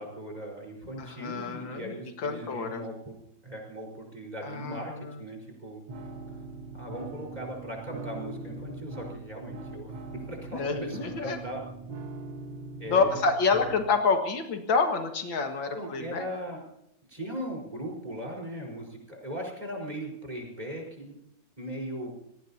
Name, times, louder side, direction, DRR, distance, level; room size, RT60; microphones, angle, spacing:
voice 1, 0.0-3.1 3.4-4.9 5.2-5.8 6.7-11.6 12.8-13.2 15.7-16.6 17.1-21.1 21.6-22.1, equal, 20° right, 1 dB, 4.8 m, -38 dB
voice 2, 1.0-2.8 4.4-5.1 10.5-11.4 12.9-16.3, left 4 dB, 85° left, 4 dB, 2.5 m, -28 dB
sound 1, 5.9-13.9, right 3 dB, 80° right, 2.2 m, -41 dB
27.5 x 18.5 x 2.8 m, 0.77 s
omnidirectional pair, 2.0 m